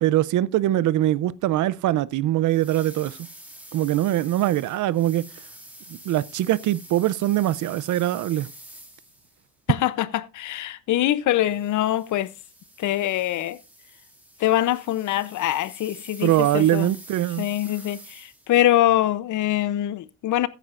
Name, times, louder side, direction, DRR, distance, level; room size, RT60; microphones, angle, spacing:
voice 1, 0.0-3.2 3.7-5.3 6.1-8.5 16.2-17.5, right 14 dB, 70° right, 0.5 m, -22 dB
sound 1, 2.4-9.5 11.4-18.6, equal, 5° right, 2.2 m, -47 dB
voice 2, 9.7-12.3 12.8-13.6 14.4-16.9 17.4-20.5, left 13 dB, 75° left, 0.7 m, -23 dB
14.5 x 9.3 x 2.5 m
cardioid pair, 130°, 31 cm